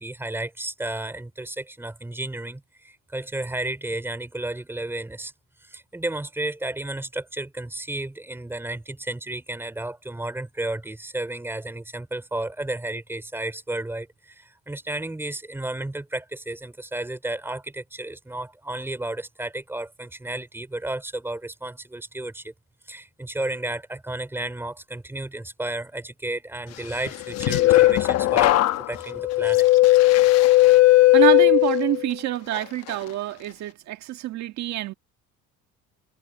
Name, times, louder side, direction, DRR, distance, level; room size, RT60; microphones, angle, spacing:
voice 1, 0.0-5.3 5.6-22.5 22.9-28.6 28.9-29.7, right 2 dB, 10° right, 3.5 m, -32 dB
sound 1, 27.1-32.1 32.5-32.9, left 17 dB, 60° left, 1.0 m, -17 dB
voice 2, 30.7-34.9, right 15 dB, 65° right, 1.8 m, -27 dB
cardioid pair, 130°, 30 cm